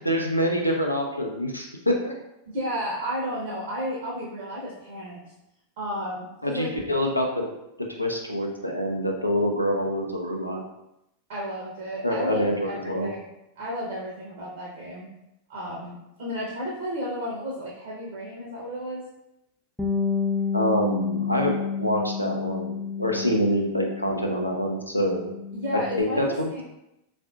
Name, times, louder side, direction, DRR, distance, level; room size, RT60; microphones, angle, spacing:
voice 1, 0.0-2.1 6.4-7.5 8.0-10.6 12.0-13.1 20.5-21.5 21.8-25.3 26.0-26.5, equal, 90° left, 1 dB, 0.5 m, -26 dB
voice 2, 2.5-5.2 5.8-6.7 11.3-13.3 13.6-15.1 15.5-19.0 25.5-26.6, equal, 55° right, -4 dB, 0.7 m, -32 dB
Bass guitar, 19.8-24.5 24.8-26.0, left 6 dB, 5° left, 0.3 m, -30 dB
3.5 x 2.5 x 2.3 m, 0.87 s
figure-of-eight pair, 90°, 0 cm